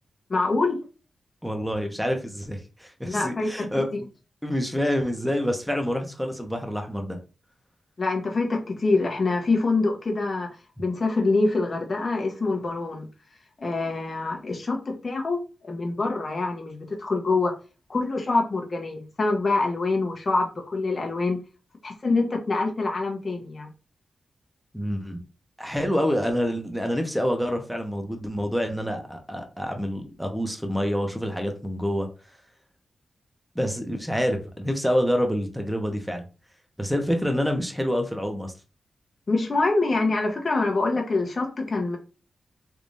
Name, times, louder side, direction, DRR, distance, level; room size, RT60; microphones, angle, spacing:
voice 1, 0.3-0.8 3.0-3.7 3.9-4.0 8.0-10.5 10.8-13.1 13.6-17.5 17.9-21.4 21.8-23.7 39.3-42.0, left 3 dB, 45° left, 1 dB, 1.0 m, -25 dB
voice 2, 1.4-4.1 4.4-7.2 24.7-25.2 25.6-32.1 33.5-36.2 36.8-38.5, equal, ahead, 4 dB, 1.0 m, -27 dB
3.6 x 3.0 x 2.6 m, 0.32 s
cardioid pair, 55°, 0 cm